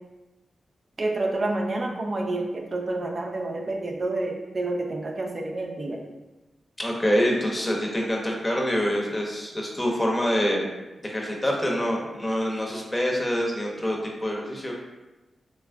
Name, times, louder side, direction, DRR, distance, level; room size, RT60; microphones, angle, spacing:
voice 1, 1.0-6.0, right 2 dB, 55° right, 1 dB, 0.4 m, -29 dB
voice 2, 6.8-10.6 11.0-14.7, equal, 25° left, -1 dB, 0.8 m, -26 dB
3.1 x 2.5 x 2.2 m, 1.1 s
cardioid pair, 45°, 0 cm